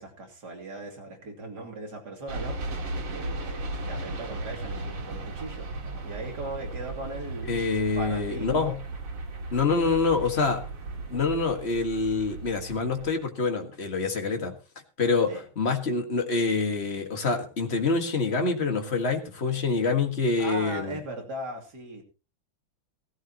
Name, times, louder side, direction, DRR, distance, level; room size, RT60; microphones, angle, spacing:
voice 1, 0.0-2.6 3.1-5.7 6.0-7.6 8.0-8.8 15.3-15.4 20.4-22.0, right 2 dB, 50° right, 2 dB, 3.5 m, -38 dB
sound 1, 2.3-13.1, right 2 dB, 80° right, 3.0 m, -36 dB
voice 2, 7.4-8.7 9.5-10.6 11.1-14.6 15.0-21.0, left 4 dB, 30° left, 5 dB, 1.9 m, -26 dB
16.5 x 15.0 x 3.0 m, 0.33 s
omnidirectional pair, 2.3 m